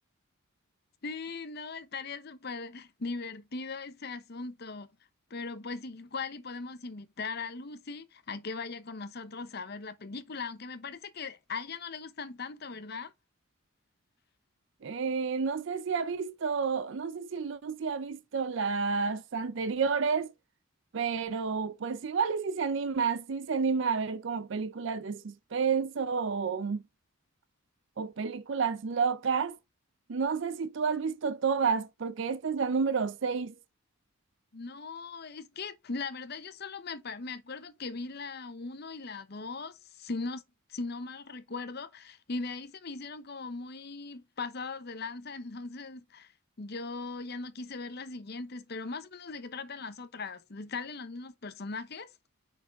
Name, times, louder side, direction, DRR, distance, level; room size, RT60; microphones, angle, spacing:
voice 1, 1.0-4.9 5.3-13.1 34.5-40.4 40.7-46.3 46.6-52.1, left 4 dB, 50° left, 0.8 m, -39 dB
voice 2, 14.8-20.3 20.9-26.8 28.0-29.6 30.1-33.5, right 5 dB, 60° right, 0.5 m, -30 dB
5.9 x 4.7 x 3.5 m
head